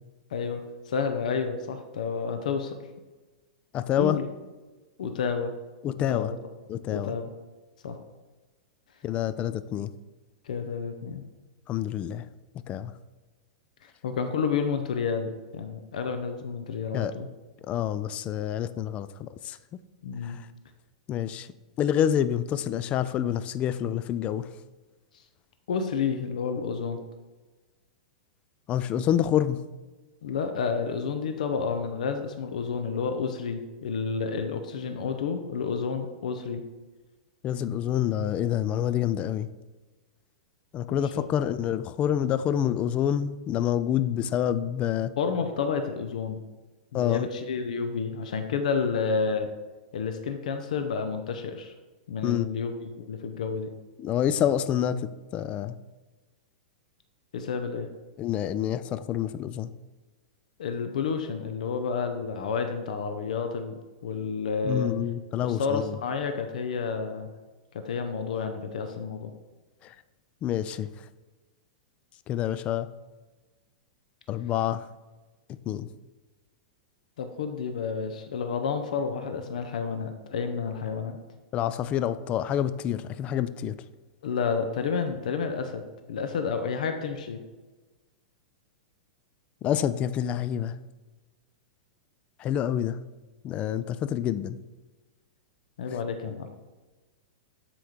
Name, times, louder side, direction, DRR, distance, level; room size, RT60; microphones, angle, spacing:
voice 1, 0.3-2.8 3.9-4.3 5.0-5.5 6.1-6.4 6.9-7.3 7.8-8.0 10.4-11.2 13.8-17.3 20.0-20.4 25.7-27.0 30.2-36.6 40.9-41.3 45.2-46.4 46.9-49.5 49.9-51.7 52.1-53.7 57.3-57.9 60.6-63.7 64.0-64.9 65.4-67.3 67.7-69.3 77.2-81.2 84.2-87.4 95.8-96.5, left 5 dB, 75° left, 7 dB, 0.7 m, -30 dB
voice 2, 3.7-4.2 5.8-6.3 6.7-7.1 9.0-9.9 11.7-12.3 12.7-12.9 16.9-17.1 17.7-19.6 20.2-20.4 21.1-21.5 21.8-24.5 28.7-29.6 37.4-39.5 40.7-45.1 46.9-47.3 52.2-52.5 54.0-55.8 58.2-59.7 64.6-65.9 70.4-70.9 72.3-72.9 74.3-74.8 75.7-75.9 81.5-83.8 89.6-90.7 92.4-93.0 93.4-94.6, left 10 dB, 30° left, 13 dB, 0.3 m, -27 dB
8.0 x 3.0 x 5.0 m, 1.2 s
hypercardioid pair, 130°, 4 cm